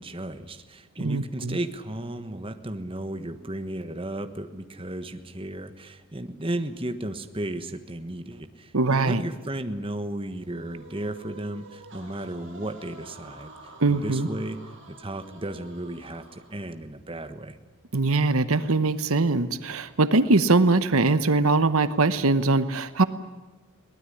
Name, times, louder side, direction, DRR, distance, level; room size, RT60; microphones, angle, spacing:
voice 1, 0.0-13.5 13.9-14.6 14.9-17.6, right 1 dB, 25° right, 8 dB, 1.3 m, -34 dB
voice 2, 1.0-1.6 8.7-9.2 13.8-14.3 17.9-23.0, right 3 dB, 70° right, 12 dB, 1.0 m, -22 dB
sound 1, 10.4-16.8, right 1 dB, 55° right, 6.5 m, -49 dB
22.5 x 19.0 x 10.0 m, 1.2 s
head